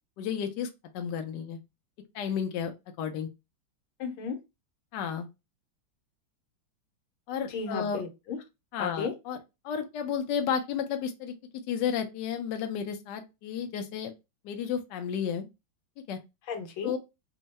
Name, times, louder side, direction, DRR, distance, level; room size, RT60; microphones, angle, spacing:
voice 1, 0.2-0.7 0.9-1.6 2.1-2.7 3.0-3.3 4.9-5.3 7.3-8.0 8.7-9.4 9.6-11.3 11.7-14.1 14.4-15.5 16.1-16.2 16.8-17.0, left 7 dB, 70° left, 1.2 m, -32 dB
voice 2, 4.0-4.4 7.4-8.4 8.8-9.1 16.5-16.9, left 5 dB, 85° left, 1.6 m, -34 dB
3.6 x 2.1 x 4.0 m
omnidirectional pair, 2.2 m